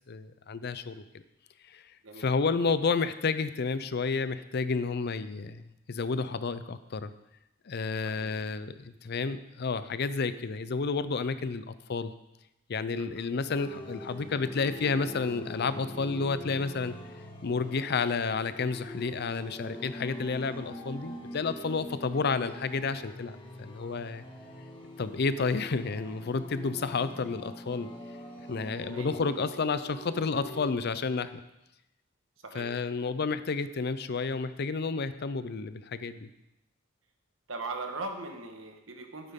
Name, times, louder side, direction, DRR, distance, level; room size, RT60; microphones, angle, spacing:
voice 1, 0.1-1.0 1.7-1.8 2.2-7.1 7.7-12.1 12.7-16.9 17.4-24.2 25.0-27.9 28.5-31.4 32.5-36.3, left 4 dB, 55° left, 13 dB, 0.6 m, -31 dB
voice 2, 13.0-13.3 28.9-29.1 32.4-32.7 37.5-39.3, right 3 dB, 85° right, 4 dB, 1.4 m, -40 dB
sound 1, 13.5-30.7, left 1 dB, 25° left, 1.8 m, -43 dB
11.5 x 9.5 x 3.7 m, 0.90 s
head